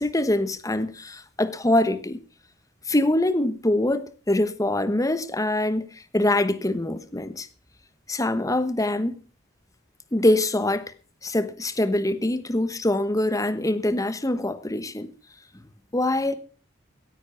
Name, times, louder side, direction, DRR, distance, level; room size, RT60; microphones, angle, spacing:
voice 1, 0.0-2.2 2.9-7.5 8.1-9.2 10.1-10.9 11.2-15.1 15.9-16.4, left 1 dB, 20° left, 1.1 m, -24 dB
16.0 x 10.0 x 5.8 m
head